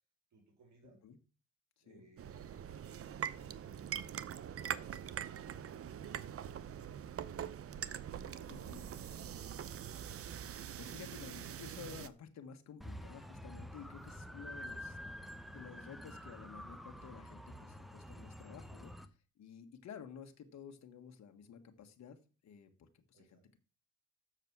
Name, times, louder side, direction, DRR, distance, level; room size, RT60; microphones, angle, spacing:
voice 1, 0.3-1.0 1.8-7.7 14.0-14.4 23.1-23.5, right 3 dB, 65° right, 1 dB, 3.7 m, -66 dB
sound 1, 2.2-12.1, right 9 dB, 50° right, 0.7 m, -43 dB
voice 2, 8.5-8.8 10.8-15.0 15.5-18.9 19.4-22.2 22.4-23.4, left 7 dB, 65° left, 6 dB, 1.7 m, -52 dB
sound 2, 12.8-19.1, equal, ahead, 1.0 m, -48 dB
7.4 x 6.8 x 6.1 m, 0.36 s
cardioid pair, 90°, 30 cm